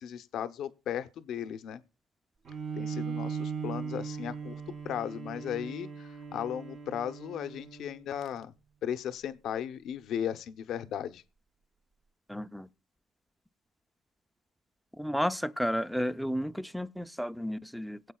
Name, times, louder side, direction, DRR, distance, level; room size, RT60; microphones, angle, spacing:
voice 1, 0.0-1.8 2.7-8.5 8.8-11.2, left 9 dB, 60° left, 0.8 m, -36 dB
Bowed string instrument, 2.4-8.1, right 6 dB, 50° right, 3.3 m, -38 dB
voice 2, 12.3-12.7 15.0-18.0, equal, ahead, 0.5 m, -32 dB
21.5 x 8.2 x 2.3 m
cardioid pair, 130°, 0 cm